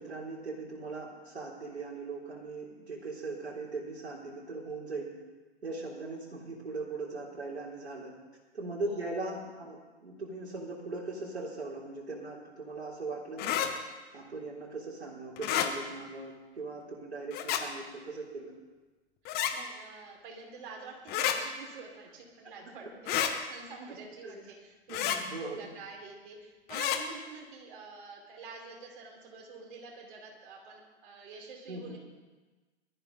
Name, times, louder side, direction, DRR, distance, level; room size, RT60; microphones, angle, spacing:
voice 1, 0.0-5.1 5.6-8.1 8.5-13.7 14.1-18.5 24.2-24.5 24.9-25.7 31.7-32.0, right 3 dB, 75° right, -6 dB, 3.8 m, -39 dB
voice 2, 8.8-9.3 19.2-23.1 23.5-32.0, right 4 dB, 50° right, -1 dB, 5.1 m, -48 dB
sound 1, 13.4-13.7 15.4-15.7 17.3-17.6 19.3-19.5 21.1-21.4 23.1-23.3 24.9-25.2 26.7-27.0, left 10 dB, 30° left, 1.4 m, -29 dB
22.0 x 13.5 x 4.1 m, 1.2 s
figure-of-eight pair, 105°, 33 cm